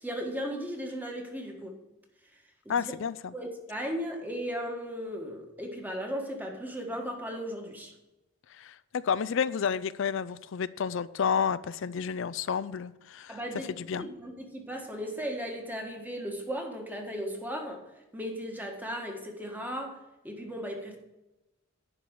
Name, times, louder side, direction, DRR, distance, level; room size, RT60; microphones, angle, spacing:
voice 1, 0.0-1.8 2.6-2.9 3.3-7.9 13.3-17.8 18.1-20.0 20.2-21.0, equal, 10° right, 2 dB, 1.5 m, -36 dB
voice 2, 2.7-3.3 8.6-13.4 13.8-14.1, left 7 dB, 65° left, 16 dB, 0.4 m, -30 dB
11.0 x 4.7 x 8.1 m, 0.97 s
head